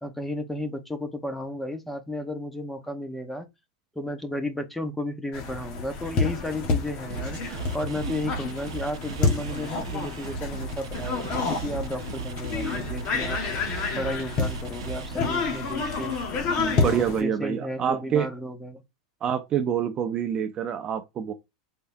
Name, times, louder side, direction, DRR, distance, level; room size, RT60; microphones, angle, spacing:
voice 1, 0.0-3.5 3.9-13.4 13.9-16.2 16.6-18.8, left 1 dB, 5° left, 0.9 m, -33 dB
sound 1, 5.3-17.2, left 4 dB, 45° left, 1.5 m, -29 dB
sound 2, 7.1-16.2, right 8 dB, 85° right, 0.6 m, -38 dB
voice 2, 16.6-18.3 19.2-21.3, right 8 dB, 30° right, 0.6 m, -26 dB
4.5 x 3.3 x 2.7 m
supercardioid pair, 125°, 3 cm